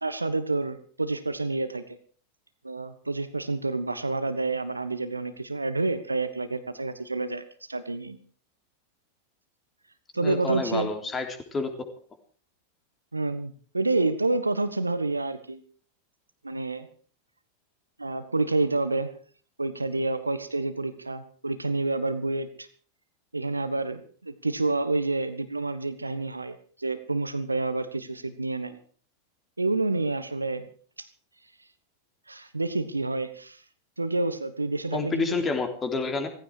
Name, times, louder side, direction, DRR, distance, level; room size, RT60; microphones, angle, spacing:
voice 1, 0.0-1.8 2.6-7.4 7.7-8.2 10.1-10.9 13.1-15.6 16.4-16.9 18.0-19.1 19.6-22.7 23.3-28.8 29.6-30.7 31.0-31.1 32.3-33.6 34.0-35.5, right 2 dB, 80° right, 12 dB, 1.3 m, -28 dB
voice 2, 10.2-11.7 34.9-36.3, left 4 dB, 20° left, 6 dB, 3.4 m, -29 dB
17.5 x 16.0 x 4.7 m, 0.44 s
figure-of-eight pair, 90°, 0 cm